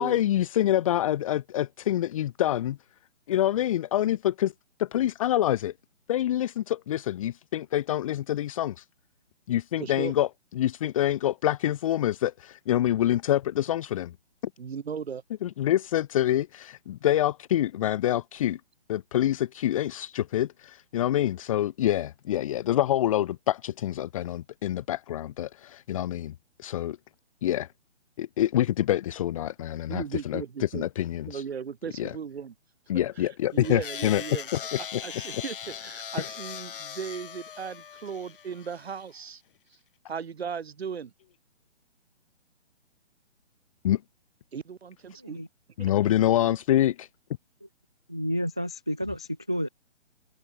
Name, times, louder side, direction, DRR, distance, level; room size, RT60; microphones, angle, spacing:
voice 1, 0.0-2.8 3.3-4.5 4.8-5.7 6.1-8.8 9.5-10.3 10.5-14.1 15.4-18.6 18.9-26.3 26.6-27.0 27.4-27.7 28.2-31.4 32.0-32.1 32.9-34.2 34.5-35.0 36.2-36.3 43.8-44.0 45.8-47.1, left 12 dB, 30° left, 1.1 m, -26 dB
voice 2, 9.8-10.1 14.6-15.2 29.9-30.9 31.3-32.5 33.2-34.5 34.8-39.4 40.1-41.1 44.5-45.4 45.8-45.9, right 6 dB, 60° right, 4.7 m, -37 dB
sound 1, 33.6-39.0, left 8 dB, 50° left, 4.9 m, -40 dB
voice 3, 48.1-49.7, equal, 5° right, 0.4 m, -30 dB
open air
hypercardioid pair, 150°, 35 cm